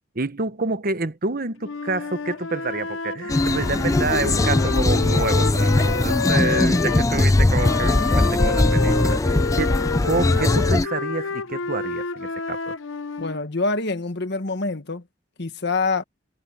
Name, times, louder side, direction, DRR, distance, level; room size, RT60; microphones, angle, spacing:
voice 1, 0.1-9.8 10.0-12.7, right 3 dB, 50° right, 1.2 m, -28 dB
Wind instrument woodwind instrument, 1.6-7.1 7.5-13.4, left 4 dB, 80° left, 0.8 m, -29 dB
sound 1, 3.3-10.9, left 2 dB, 15° left, 0.4 m, -20 dB
voice 2, 13.2-15.0 15.4-16.0, left 3 dB, 60° left, 1.6 m, -25 dB
head